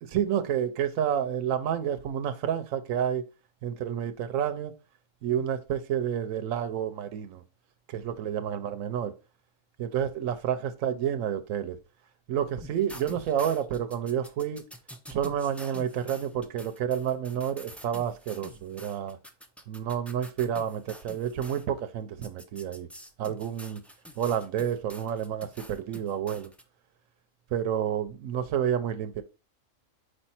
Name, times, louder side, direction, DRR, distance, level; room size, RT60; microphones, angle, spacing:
voice 1, 0.0-3.2 3.6-4.7 5.2-7.4 7.9-9.1 9.8-11.8 12.3-14.6 15.1-19.2 19.7-22.9 23.2-23.8 24.2-26.5 27.5-29.2, right 9 dB, 85° right, 1.0 m, -29 dB
sound 1, 12.6-21.7 22.2-26.6, equal, ahead, 0.4 m, -47 dB
5.0 x 4.4 x 4.3 m
omnidirectional pair, 1.4 m